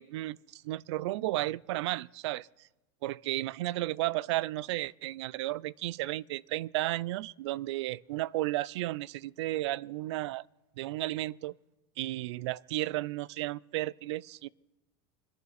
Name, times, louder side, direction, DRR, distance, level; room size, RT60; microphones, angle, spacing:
voice 1, 0.0-2.5 3.0-10.5 10.8-11.6 12.0-14.5, right 17 dB, 85° right, 0.4 m, -33 dB
26.0 x 11.0 x 4.1 m
supercardioid pair, 155°, 14 cm